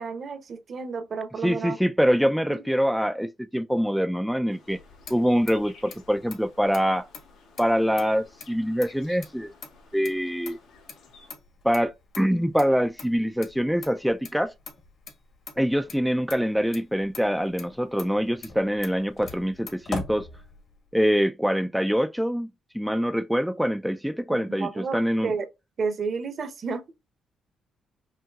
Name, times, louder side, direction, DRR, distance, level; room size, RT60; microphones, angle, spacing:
voice 1, 0.0-1.8 2.5-2.6 24.3-25.5 25.8-26.8, right 5 dB, 50° right, 0.8 m, -31 dB
voice 2, 1.4-4.8 5.1-7.1 7.6-9.5 9.9-10.6 11.6-14.5 15.6-20.3 20.9-22.5 22.7-25.3, equal, ahead, 0.3 m, -24 dB
sound 1, 4.5-11.3, left 4 dB, 85° left, 1.7 m, -54 dB
Motor vehicle (road), 4.6-20.9, left 4 dB, 55° left, 1.4 m, -43 dB
5.7 x 2.6 x 2.3 m
cardioid pair, 90°, 0 cm